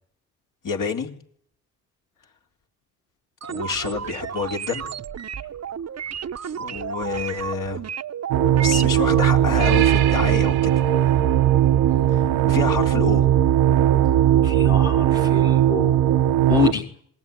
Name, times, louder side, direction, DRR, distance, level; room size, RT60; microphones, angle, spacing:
voice 1, 0.6-1.1 3.4-4.9 6.6-7.8 8.6-10.7 12.1-13.3, left 5 dB, 60° left, 2 dB, 4.1 m, -28 dB
sound 1, 3.4-9.3, right 8 dB, 45° right, 1.1 m, -32 dB
sound 2, 8.3-16.7, right 11 dB, 75° right, 1.2 m, -18 dB
voice 2, 14.4-16.0 16.5-16.9, left 7 dB, 85° left, 0 dB, 3.3 m, -26 dB
27.0 x 20.5 x 9.5 m, 0.64 s
hypercardioid pair, 50°, 37 cm